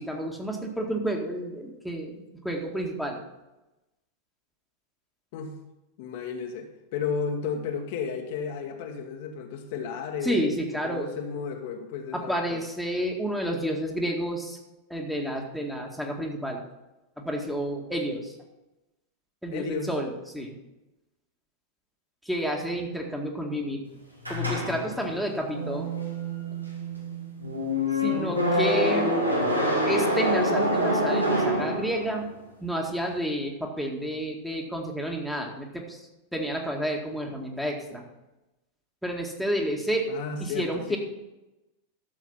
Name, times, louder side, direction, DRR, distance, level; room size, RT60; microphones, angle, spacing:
voice 1, 0.0-3.2 10.2-11.1 12.1-14.6 14.9-16.6 17.2-18.3 19.4-20.6 22.2-23.9 24.3-25.9 28.0-29.1 29.8-32.3 32.6-36.0 36.3-38.0 39.0-41.0, equal, ahead, 0 dB, 1.9 m, -30 dB
voice 2, 6.0-10.4 10.8-12.6 19.5-19.9 40.1-41.0, left 6 dB, 50° left, 3 dB, 1.4 m, -33 dB
sound 1, 24.2-32.3, equal, 85° right, 2.3 m, -26 dB
12.5 x 7.6 x 5.6 m, 1.0 s
figure-of-eight pair, 90°, 0 cm